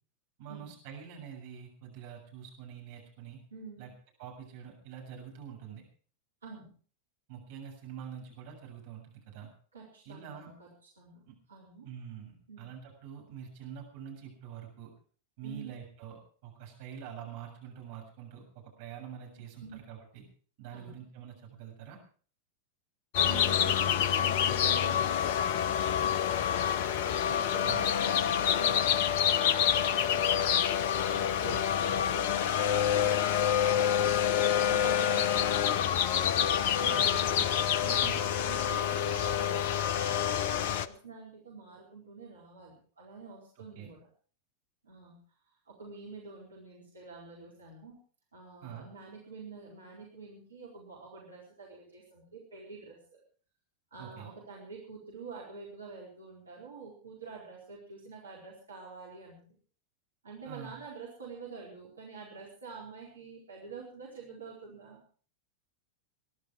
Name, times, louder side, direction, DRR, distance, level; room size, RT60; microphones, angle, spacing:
voice 1, 0.4-3.4 3.8-3.9 4.2-5.8 7.3-9.5 10.1-10.5 11.3-11.4 11.8-14.9 15.4-20.2 20.6-22.0 27.6-27.9 31.5-32.1 36.8-37.0 37.3-37.5 38.0-38.2 43.8-43.9 48.6-48.9 54.0-54.3 60.4-60.7, right 8 dB, 50° right, 0 dB, 7.2 m, -46 dB
voice 2, 3.5-3.9 6.4-6.7 9.7-10.7 11.0-11.9 12.5-12.7 15.4-15.7 19.4-19.8 20.7-21.0 23.2-25.7 26.2-36.1 36.7-37.4 37.8-44.1 44.8-45.2 45.5-48.0 48.3-53.2 53.9-59.6 60.2-65.0, right 4 dB, 75° right, -3 dB, 4.4 m, -48 dB
sound 1, 23.1-40.9, left 9 dB, 50° left, 0.8 m, -27 dB
22.5 x 11.5 x 4.8 m, 0.43 s
figure-of-eight pair, 90°, 0 cm